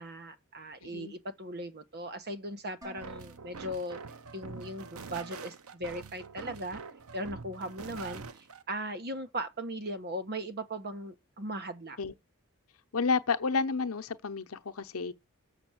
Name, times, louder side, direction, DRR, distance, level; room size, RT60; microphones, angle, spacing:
voice 1, 0.0-4.0 4.3-6.8 7.1-12.0, right 1 dB, 50° right, 1.2 m, -38 dB
voice 2, 0.8-1.1 12.0-12.1 12.9-15.1, left 4 dB, 75° left, 0.8 m, -31 dB
Dishes pots and pans, 2.8-4.9, equal, 15° right, 3.1 m, -54 dB
sound 1, 3.0-8.6, right 5 dB, 75° right, 0.8 m, -45 dB
7.0 x 6.0 x 7.3 m
head